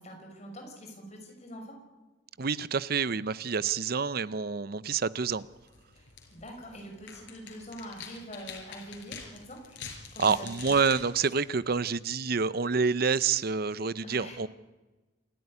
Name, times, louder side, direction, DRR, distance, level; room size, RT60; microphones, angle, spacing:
voice 1, 0.0-1.8 5.9-9.8 10.1-10.8 14.0-14.4, equal, 35° left, 2 dB, 6.3 m, -44 dB
voice 2, 2.4-5.5 10.2-14.5, right 5 dB, 55° right, 17 dB, 0.7 m, -28 dB
sound 1, 5.2-12.1, left 6 dB, 90° left, 5.3 m, -47 dB
28.5 x 12.5 x 9.9 m, 1.2 s
head